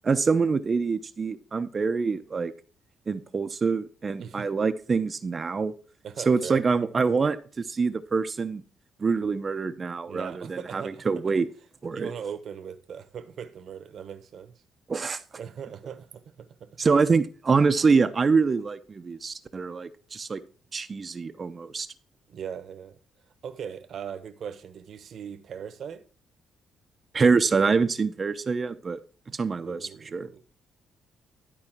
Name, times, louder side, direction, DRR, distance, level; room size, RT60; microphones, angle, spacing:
voice 1, 0.0-2.5 3.1-5.7 6.3-8.6 9.0-11.5 11.8-12.1 14.9-15.2 16.8-20.4 20.7-21.9 27.1-29.0 29.3-30.3, right 4 dB, 35° right, 0.7 m, -25 dB
voice 2, 6.0-6.6 10.0-11.0 11.9-14.6 15.4-16.7 22.3-23.0 23.4-26.0 29.6-30.4, right 7 dB, 60° right, 1.1 m, -39 dB
12.5 x 4.2 x 6.0 m
cardioid pair, 90°, 0 cm